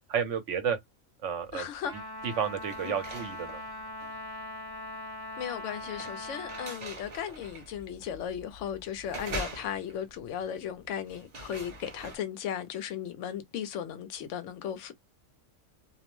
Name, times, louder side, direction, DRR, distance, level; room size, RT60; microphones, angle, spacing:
voice 1, 0.1-0.8 1.2-1.7 1.9-3.6, right 7 dB, 65° right, 1.1 m, -31 dB
sound 1, 1.4-1.8 2.2-12.2, right 2 dB, 35° right, 0.8 m, -44 dB
voice 2, 1.5-1.9 2.8-2.9 5.4-14.9, left 9 dB, 70° left, 0.9 m, -36 dB
Trumpet, 1.8-6.9, left 1 dB, 25° left, 0.5 m, -41 dB
2.5 x 2.1 x 3.0 m
omnidirectional pair, 1.4 m